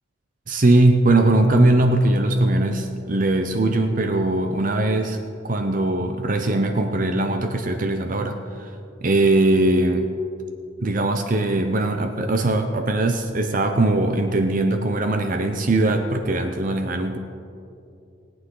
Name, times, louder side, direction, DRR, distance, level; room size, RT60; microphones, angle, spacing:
voice 1, 0.5-5.2 5.4-8.4 9.0-10.1 10.8-17.2, right 2 dB, 40° right, 6 dB, 0.6 m, -20 dB
20.0 x 8.7 x 3.8 m, 2.6 s
head